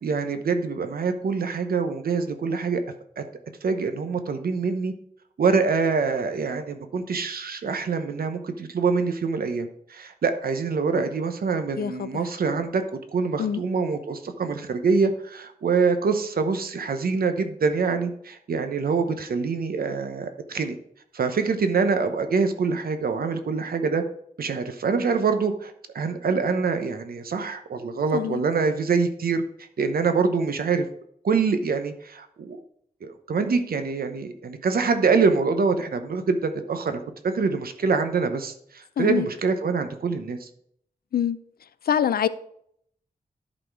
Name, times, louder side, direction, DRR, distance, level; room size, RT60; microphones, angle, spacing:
voice 1, 0.0-2.8 3.2-3.3 3.6-4.9 5.4-12.8 13.1-20.7 21.1-24.0 24.4-29.4 29.8-30.8 31.2-32.6 33.0-40.5, right 5 dB, 85° right, 0.9 m, -25 dB
voice 2, 11.8-12.1 13.4-13.6 28.1-28.4 39.0-39.3 41.1-41.4 41.9-42.3, left 9 dB, 85° left, 0.5 m, -24 dB
11.0 x 4.2 x 4.7 m
wide cardioid pair, 115°, 15 cm